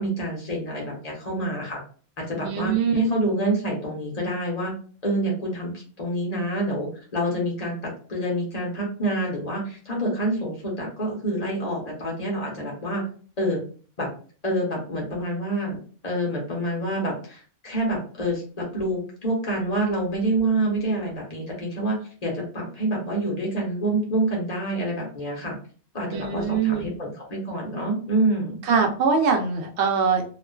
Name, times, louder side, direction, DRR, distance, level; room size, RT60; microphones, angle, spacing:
voice 1, 0.0-1.8 2.3-4.7 5.0-13.1 13.4-13.6 14.0-14.1 14.4-15.8 16.0-25.6 25.9-28.6, right 1 dB, 40° left, -2 dB, 0.8 m, -27 dB
voice 2, 2.4-3.0 26.1-26.9 28.7-30.2, right 5 dB, 85° right, 3 dB, 0.9 m, -23 dB
2.4 x 2.3 x 2.2 m, 0.41 s
omnidirectional pair, 1.1 m